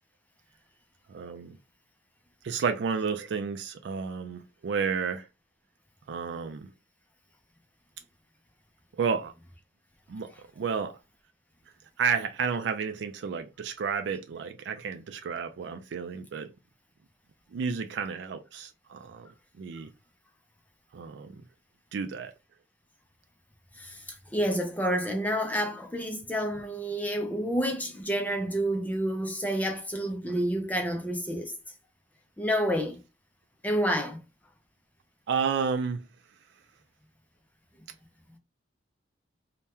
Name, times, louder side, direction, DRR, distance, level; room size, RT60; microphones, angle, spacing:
voice 1, 1.1-1.6 2.4-5.2 6.1-6.7 9.0-9.3 10.1-10.3 10.6-11.0 12.0-16.5 17.5-19.3 19.6-19.9 20.9-21.4 21.9-22.3 35.3-36.1, right 6 dB, 70° right, 0.3 m, -31 dB
voice 2, 23.8-31.5 32.4-33.0 33.6-34.2, equal, 10° left, 0.4 m, -29 dB
2.8 x 2.1 x 3.4 m
head